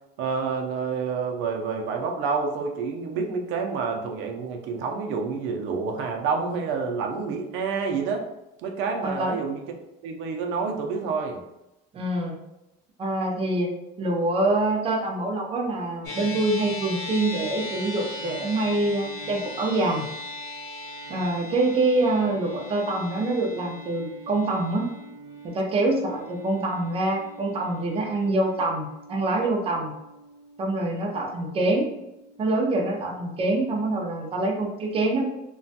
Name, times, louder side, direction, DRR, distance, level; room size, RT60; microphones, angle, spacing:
voice 1, 0.2-8.2 8.6-9.6 10.0-11.4, right 5 dB, 75° right, 2 dB, 0.5 m, -28 dB
voice 2, 9.0-9.4 11.9-12.3 13.0-13.7 14.0-20.1 21.1-24.9 25.4-29.9 30.6-31.9 32.4-35.2, right 2 dB, 30° right, 0 dB, 0.5 m, -25 dB
sound 1, 16.0-34.6, left 1 dB, 70° left, 1.2 m, -40 dB
3.0 x 2.2 x 2.7 m, 0.92 s
cardioid pair, 145°, 20 cm